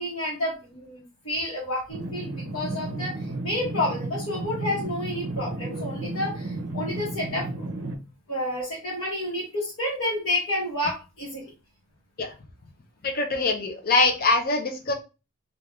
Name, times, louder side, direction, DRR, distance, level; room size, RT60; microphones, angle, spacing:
voice 1, 0.0-3.1 3.4-7.7 8.3-11.4, left 1 dB, 60° left, -7 dB, 1.1 m, -30 dB
sound 1, 1.9-8.0, right 2 dB, 60° right, 0.5 m, -33 dB
voice 2, 13.0-14.9, left 3 dB, 40° left, 4 dB, 0.5 m, -23 dB
3.2 x 2.3 x 2.3 m, 0.31 s
head